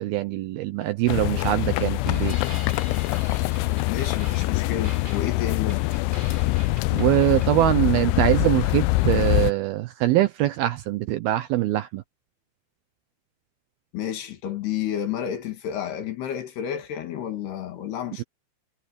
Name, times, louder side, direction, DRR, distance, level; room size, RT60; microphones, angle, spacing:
voice 1, 0.0-2.4 6.9-12.0, right 15 dB, 80° right, 2.2 m, -23 dB
sound 1, 1.1-9.5, left 20 dB, 85° left, 2.8 m, -24 dB
sound 2, 2.0-7.7, right 1 dB, 10° right, 5.0 m, -44 dB
voice 2, 3.9-5.9 13.9-18.2, left 10 dB, 65° left, 3.9 m, -30 dB
omnidirectional pair, 5.3 m